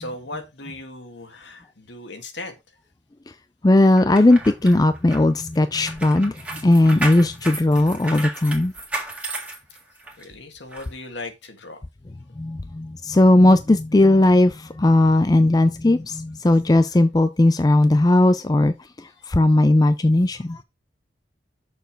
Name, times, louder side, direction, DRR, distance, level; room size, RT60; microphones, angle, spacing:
voice 1, 0.0-2.5 9.7-9.8 10.2-11.8, left 2 dB, 70° left, 1.8 m, -37 dB
voice 2, 3.6-8.7 12.4-20.6, left 1 dB, 20° left, 0.4 m, -17 dB
sound 1, 4.0-10.2 10.7-10.9, right 2 dB, 5° right, 1.8 m, -33 dB
6.8 x 6.6 x 4.6 m
head